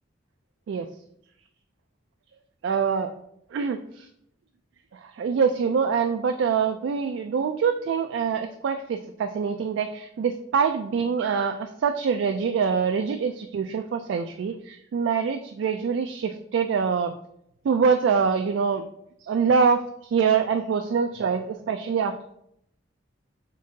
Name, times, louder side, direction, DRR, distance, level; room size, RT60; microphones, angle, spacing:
voice 1, 2.6-3.1 3.5-4.1 4.9-17.1 17.6-18.8 19.2-22.2, right 6 dB, 70° right, 6 dB, 0.3 m, -25 dB
5.1 x 3.7 x 2.7 m, 0.74 s
head